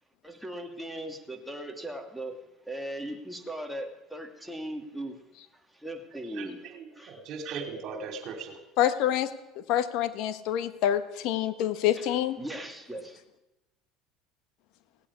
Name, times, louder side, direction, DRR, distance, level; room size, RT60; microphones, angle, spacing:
voice 1, 0.2-2.4 2.7-5.2 5.5-6.7 6.9-7.3 11.9-13.2, right 1 dB, ahead, 2 dB, 2.6 m, -39 dB
voice 2, 6.3-8.6, right 5 dB, 55° right, 6 dB, 2.9 m, -39 dB
voice 3, 8.8-9.3 9.7-12.4, left 11 dB, 70° left, 11 dB, 1.4 m, -26 dB
17.0 x 8.5 x 9.8 m, 0.96 s
supercardioid pair, 110°, 0 cm